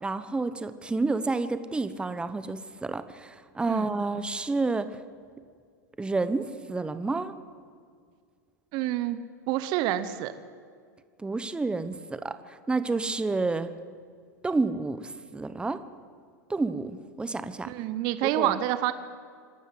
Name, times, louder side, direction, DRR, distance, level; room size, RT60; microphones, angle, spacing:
voice 1, 0.0-5.0 6.0-7.3 11.2-13.7 14.4-15.8 16.5-17.7 18.2-18.5, right 3 dB, 10° right, 12 dB, 1.1 m, -30 dB
voice 2, 8.7-9.2 9.5-10.3 17.6-18.9, right 13 dB, 50° right, 13 dB, 1.1 m, -27 dB
26.5 x 12.5 x 7.9 m, 2.1 s
hypercardioid pair, 100°, 10 cm